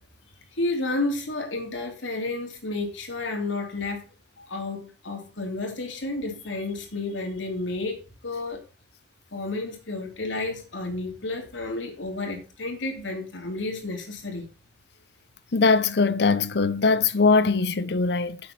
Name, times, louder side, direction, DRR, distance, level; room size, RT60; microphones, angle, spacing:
voice 1, 0.5-4.1 4.5-8.6 9.3-14.5, left 2 dB, 90° left, 2.6 m, -31 dB
voice 2, 15.5-18.4, left 4 dB, 60° left, 0.7 m, -21 dB
7.6 x 6.2 x 5.6 m
head